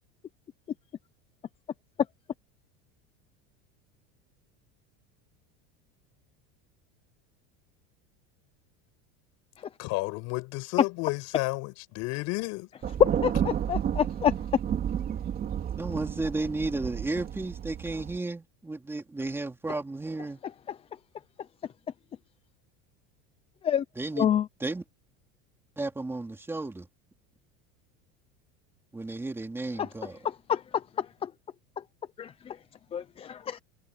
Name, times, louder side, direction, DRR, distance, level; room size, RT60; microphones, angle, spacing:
voice 1, 9.8-12.7, left 24 dB, 55° left, 6.2 m, -32 dB
Thunder, 12.8-18.2, right 9 dB, 25° right, 3.4 m, -32 dB
voice 2, 13.0-14.3 23.6-23.8 24.2-24.5 29.8-29.9 30.2-30.6 31.0-31.3 32.2-32.6 32.9-33.6, left 9 dB, 20° left, 0.5 m, -27 dB
voice 3, 15.8-20.4 24.0-24.3 24.6-24.8 25.8-26.9 28.9-30.2, right 2 dB, 5° right, 3.3 m, -33 dB
cardioid pair, 165°, 33 cm